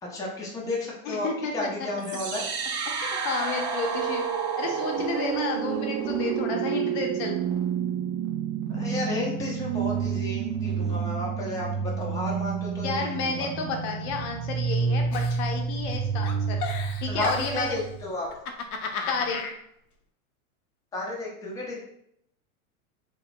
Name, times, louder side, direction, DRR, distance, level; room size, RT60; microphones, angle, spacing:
voice 1, 0.0-2.5 8.7-13.5 17.0-18.3 20.9-21.8, left 2 dB, 10° left, -4 dB, 0.6 m, -32 dB
voice 2, 1.1-1.5 3.0-4.3 4.6-7.4 12.8-16.6 17.0-17.7 19.1-19.4, left 4 dB, 50° left, 2 dB, 0.7 m, -31 dB
sound 1, 2.0-18.0, right 6 dB, 45° right, 0.7 m, -29 dB
Giggle, 15.1-16.0 16.2-17.7 18.3-19.5, left 4 dB, 90° left, 0.6 m, -34 dB
3.0 x 2.8 x 2.5 m, 0.73 s
hypercardioid pair, 110°, 43 cm